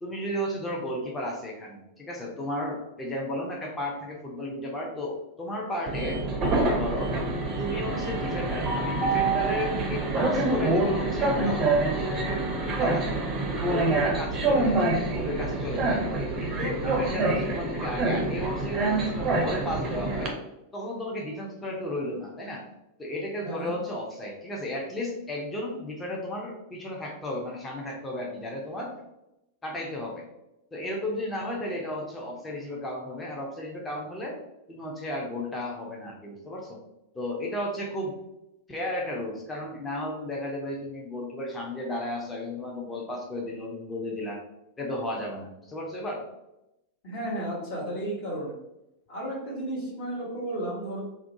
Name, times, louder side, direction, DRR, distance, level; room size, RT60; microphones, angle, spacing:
voice 1, 0.0-6.2 6.8-7.1 7.6-12.4 12.8-13.1 13.7-16.0 16.4-20.3 20.7-22.6 23.0-28.9 29.6-30.2 30.7-34.4 34.7-36.8 37.1-38.1 38.7-44.4 44.8-46.2, left 1 dB, 15° left, -1 dB, 0.5 m, -34 dB
Train, 5.9-20.3, right 2 dB, 30° right, 0.5 m, -26 dB
voice 2, 47.0-48.5 49.1-51.0, right 1 dB, 50° left, -6 dB, 1.0 m, -33 dB
2.4 x 2.2 x 2.6 m, 0.89 s
figure-of-eight pair, 90°, 0 cm